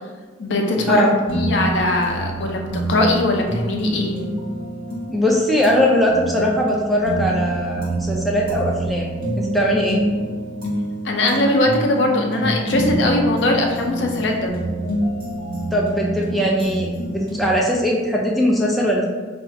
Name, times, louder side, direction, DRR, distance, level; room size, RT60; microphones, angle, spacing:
voice 1, 0.4-2.6 2.9-4.1 11.0-14.5, left 1 dB, 70° left, 2 dB, 0.5 m, -20 dB
sound 1, 0.7-17.5, right 1 dB, 30° right, 1.2 m, -27 dB
voice 2, 5.1-9.1 9.4-10.0 15.7-19.1, equal, ahead, -3 dB, 0.3 m, -20 dB
2.4 x 2.3 x 4.0 m, 1.4 s
head